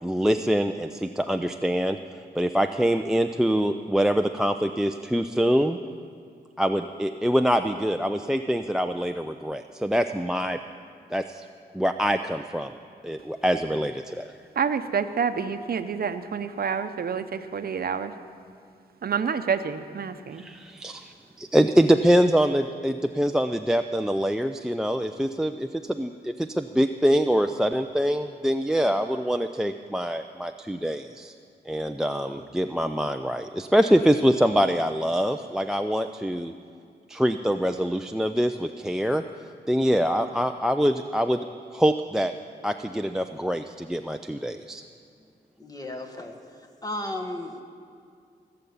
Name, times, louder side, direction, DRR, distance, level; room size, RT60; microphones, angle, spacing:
voice 1, 0.0-2.0 2.3-5.8 6.6-10.6 11.1-11.5 11.7-12.7 13.0-14.3 20.4-31.3 31.7-36.5 37.1-39.2 39.7-41.5 41.7-42.3 42.6-44.8, equal, 5° right, 8 dB, 0.4 m, -24 dB
voice 2, 14.6-18.1 19.0-20.4, right 6 dB, 60° right, 10 dB, 0.8 m, -28 dB
voice 3, 45.6-46.3 46.8-47.5, left 1 dB, 20° left, 3 dB, 1.7 m, -34 dB
17.5 x 6.8 x 8.6 m, 2.3 s
cardioid pair, 80°, 17 cm